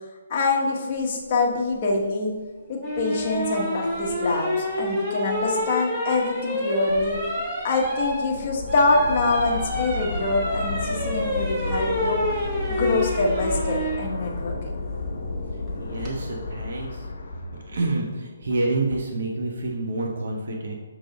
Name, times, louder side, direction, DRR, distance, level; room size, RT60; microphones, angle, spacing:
voice 1, 0.3-2.3 2.7-7.2 7.6-12.4 12.7-14.7, left 3 dB, 30° left, -2 dB, 0.9 m, -25 dB
sound 1, 2.8-14.0 15.7-16.1, left 1 dB, 10° right, 0.9 m, -28 dB
sound 2, 8.1-18.0, left 3 dB, 55° left, 0.9 m, -32 dB
voice 2, 15.8-17.0 17.7-20.7, right 2 dB, 60° right, 0 dB, 0.9 m, -28 dB
6.4 x 3.9 x 3.9 m, 1.3 s
hypercardioid pair, 175°, 0 cm